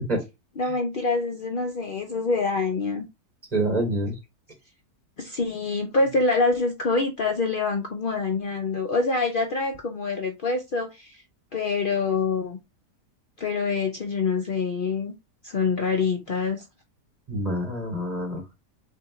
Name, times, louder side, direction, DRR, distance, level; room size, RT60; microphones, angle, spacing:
voice 1, 0.6-3.0 5.2-11.2 11.5-12.6 13.4-15.1 15.4-16.6, left 4 dB, 75° left, 0.4 m, -25 dB
voice 2, 3.5-4.1 17.3-18.4, right 1 dB, 25° right, 2.4 m, -26 dB
4.6 x 3.6 x 3.0 m
omnidirectional pair, 1.8 m